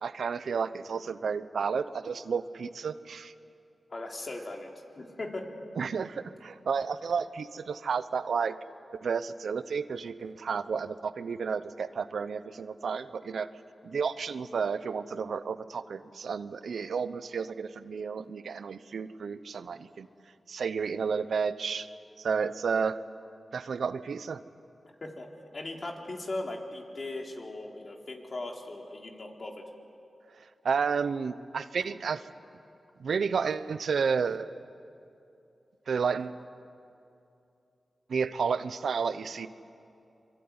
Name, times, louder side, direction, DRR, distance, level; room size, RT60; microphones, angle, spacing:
voice 1, 0.0-3.3 5.8-8.6 9.0-13.5 13.8-20.1 20.5-21.9 22.2-23.0 23.5-24.4 30.4-32.3 33.0-34.5 35.9-36.4 38.1-39.5, right 6 dB, 85° right, 13 dB, 0.9 m, -31 dB
voice 2, 3.9-5.5 25.0-29.6, left 2 dB, 50° left, 1 dB, 3.8 m, -38 dB
25.0 x 24.0 x 9.7 m, 2.6 s
cardioid pair, 65°, 0 cm